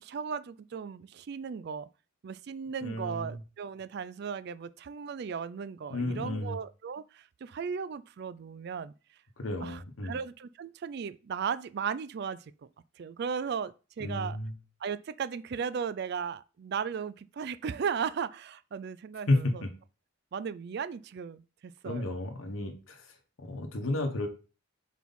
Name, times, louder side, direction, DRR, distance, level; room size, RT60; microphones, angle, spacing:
voice 1, 0.0-1.9 2.2-8.9 9.6-12.5 13.0-14.4 14.8-19.6 20.3-22.2, right 6 dB, 50° right, 0.3 m, -36 dB
voice 2, 2.8-3.4 5.9-6.6 9.4-10.2 14.0-14.5 19.3-19.7 21.8-23.1 23.4-24.3, left 2 dB, 70° left, 1.0 m, -32 dB
4.6 x 4.0 x 5.3 m
head